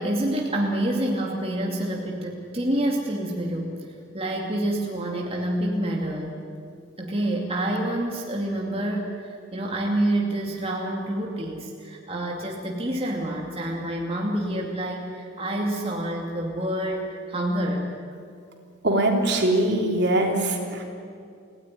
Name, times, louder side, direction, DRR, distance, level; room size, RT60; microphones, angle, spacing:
voice 1, 0.0-3.8 4.1-6.4 7.0-17.9, right 1 dB, 30° right, -1 dB, 2.6 m, -27 dB
voice 2, 18.8-20.8, right 1 dB, 55° right, 2 dB, 3.4 m, -22 dB
29.5 x 18.0 x 10.0 m, 2.4 s
head